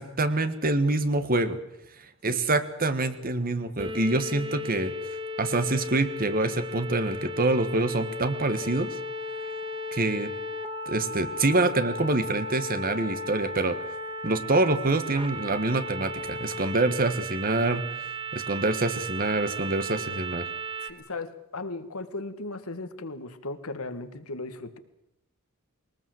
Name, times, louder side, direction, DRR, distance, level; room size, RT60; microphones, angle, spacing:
voice 1, 0.0-1.6 2.2-4.9 5.4-9.0 9.9-10.3 10.9-13.8 14.2-17.8 18.3-20.5, right 2 dB, 40° right, 11 dB, 1.5 m, -26 dB
sound 1, 3.8-20.9, equal, 25° right, 1.7 m, -35 dB
voice 2, 20.8-24.8, left 2 dB, 75° left, 10 dB, 1.7 m, -37 dB
21.5 x 19.5 x 7.8 m, 0.81 s
head